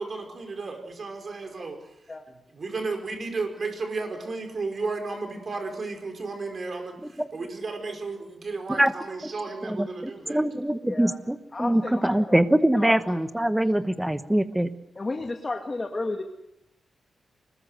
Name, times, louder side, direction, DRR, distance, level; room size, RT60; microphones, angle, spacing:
voice 1, 0.0-1.8 2.5-10.4, right 3 dB, 40° right, 5 dB, 5.0 m, -33 dB
voice 2, 9.6-14.7, right 1 dB, 5° right, 11 dB, 1.2 m, -23 dB
voice 3, 10.8-11.2 11.5-13.2 13.6-13.7 15.0-16.2, left 2 dB, 25° left, 3 dB, 1.8 m, -33 dB
25.0 x 20.5 x 8.0 m, 0.84 s
wide cardioid pair, 150°, 0 cm